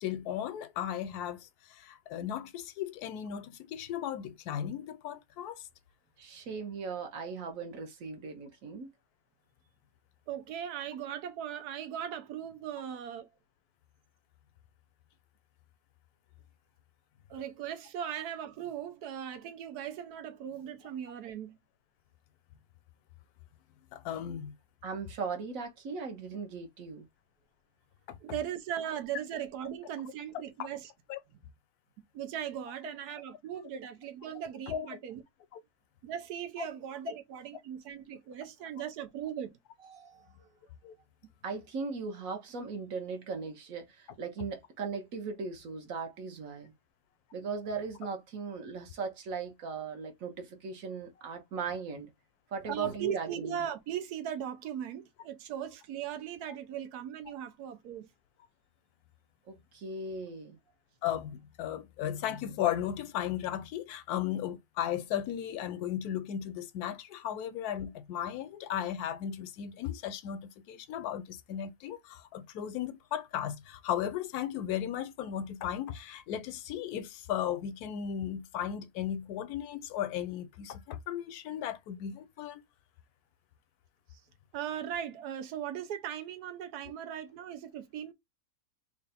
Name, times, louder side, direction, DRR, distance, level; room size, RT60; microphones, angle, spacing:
voice 1, 0.0-5.6 23.9-24.5 28.1-28.2 30.6-30.7 31.1-31.2 34.7-34.9 35.5-35.6 36.6-36.7 40.8-40.9 61.0-82.6, left 10 dB, 80° left, 1.1 m, -36 dB
voice 2, 6.2-8.9 24.8-27.1 39.9-40.5 41.4-46.7 47.3-52.1 52.5-53.6 59.5-60.6, right 5 dB, 65° right, 1.3 m, -38 dB
voice 3, 10.3-13.3 17.3-21.6 28.2-30.9 32.1-35.2 36.0-39.5 52.7-58.1 84.1-84.2 84.5-88.1, right 9 dB, 85° right, 1.2 m, -38 dB
3.2 x 2.5 x 4.0 m
omnidirectional pair, 1.6 m